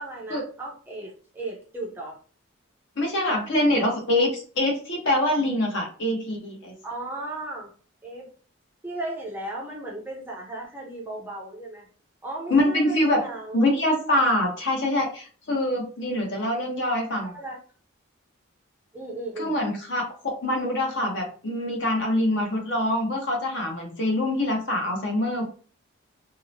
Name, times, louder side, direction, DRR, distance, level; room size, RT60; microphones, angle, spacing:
voice 1, 0.0-2.2 6.8-7.7 8.0-8.3 8.8-11.9 12.2-13.8 17.2-17.6 18.9-19.5, right 2 dB, 10° right, -3 dB, 0.5 m, -36 dB
voice 2, 3.0-6.7 12.5-13.2 13.5-17.3 19.4-25.4, left 1 dB, 55° left, 0 dB, 0.8 m, -24 dB
2.7 x 2.0 x 2.6 m, 0.40 s
head